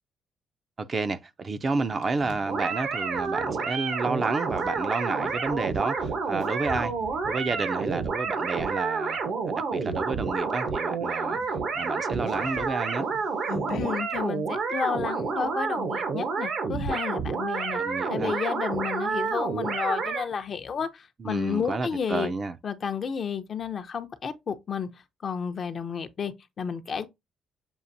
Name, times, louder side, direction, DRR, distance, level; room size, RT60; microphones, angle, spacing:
voice 1, 0.8-6.9 7.3-9.2 9.5-11.4 11.8-13.1 17.8-18.4 21.2-22.6, right 3 dB, 40° right, 0.4 m, -30 dB
sound 1, 1.6-3.5 4.5-8.7 9.2-9.5 9.8-10.5 10.8-10.9 11.2-14.2, left 4 dB, 85° left, 0.7 m, -43 dB
sound 2, 2.4-20.3, right 5 dB, 70° right, 0.9 m, -29 dB
voice 2, 13.7-17.8 18.1-22.3 22.6-24.9 25.2-27.1, left 6 dB, 50° left, 0.6 m, -31 dB
7.0 x 2.5 x 2.6 m
cardioid pair, 90°, 0 cm